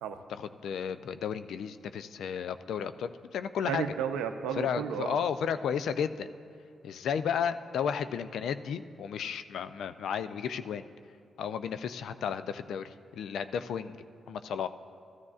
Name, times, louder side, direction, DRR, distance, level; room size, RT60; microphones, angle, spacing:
voice 1, 0.3-3.8 4.5-6.3 6.8-10.8 11.4-14.0 14.3-14.7, left 7 dB, 75° left, 11 dB, 0.4 m, -33 dB
voice 2, 3.6-5.3, right 8 dB, 85° right, 7 dB, 0.5 m, -33 dB
14.0 x 13.0 x 2.4 m, 2.3 s
supercardioid pair, 45°, 0 cm